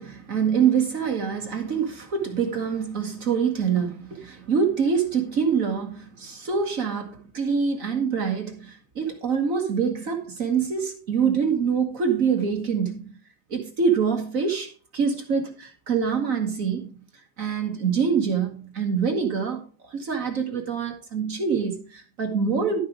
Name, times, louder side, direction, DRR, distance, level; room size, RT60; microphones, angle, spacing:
voice 1, 0.0-13.1 13.5-17.1 17.4-19.6 19.9-22.8, right 6 dB, 50° right, 1.6 m, -25 dB
12.0 x 5.4 x 4.9 m
omnidirectional pair, 2.0 m